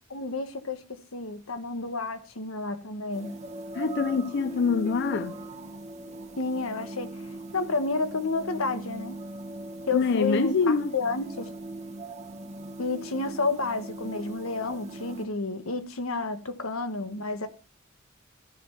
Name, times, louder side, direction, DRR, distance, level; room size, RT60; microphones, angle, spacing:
voice 1, 0.1-0.8 1.1-3.3 6.4-7.1 7.5-9.2 9.9-11.5 12.8-17.5, left 3 dB, 85° left, 1.3 m, -30 dB
sound 1, 3.1-15.2, right 2 dB, 35° right, 1.1 m, -40 dB
voice 2, 3.7-5.4 9.9-10.9, left 5 dB, 60° left, 0.5 m, -25 dB
13.0 x 5.7 x 5.9 m
head